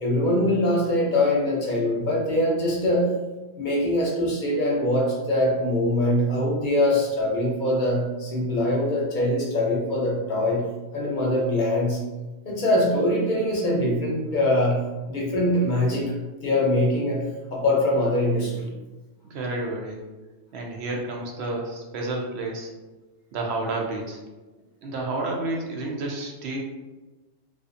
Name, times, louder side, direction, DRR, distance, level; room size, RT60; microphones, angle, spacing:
voice 1, 0.0-3.1 3.6-10.6 10.9-12.0 12.5-14.8 15.1-16.1 16.4-17.2 17.5-18.7, left 1 dB, 50° left, -3 dB, 0.6 m, -23 dB
voice 2, 19.3-20.0 20.5-22.7 23.3-24.2 24.8-26.6, right 2 dB, 70° right, 0 dB, 0.8 m, -30 dB
2.5 x 2.4 x 2.5 m, 1.2 s
omnidirectional pair, 1.2 m